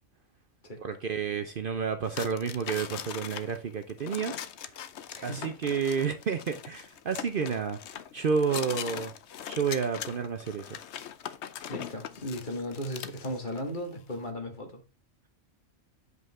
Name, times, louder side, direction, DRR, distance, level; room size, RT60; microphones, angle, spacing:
voice 1, 0.8-4.4 5.2-7.8 8.1-9.1 9.4-10.8, right 6 dB, 55° right, 0.7 m, -30 dB
sound 1, 2.0-13.7, left 9 dB, 65° left, 0.9 m, -41 dB
voice 2, 5.1-5.5 11.7-14.8, equal, 40° left, 1.9 m, -36 dB
8.1 x 5.3 x 3.6 m
omnidirectional pair, 1.3 m